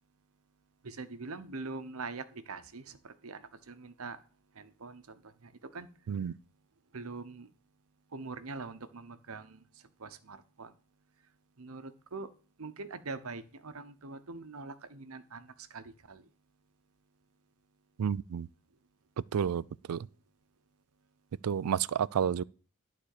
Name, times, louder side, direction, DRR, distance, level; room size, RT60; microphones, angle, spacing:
voice 1, 0.8-4.2 4.6-5.9 6.9-7.5 8.1-9.6 10.0-10.7 11.6-12.3 12.6-16.2, right 3 dB, 70° right, 0.9 m, -43 dB
voice 2, 18.0-18.5 19.3-20.1 21.4-22.4, right 8 dB, 85° right, 0.4 m, -30 dB
11.5 x 4.2 x 6.6 m
head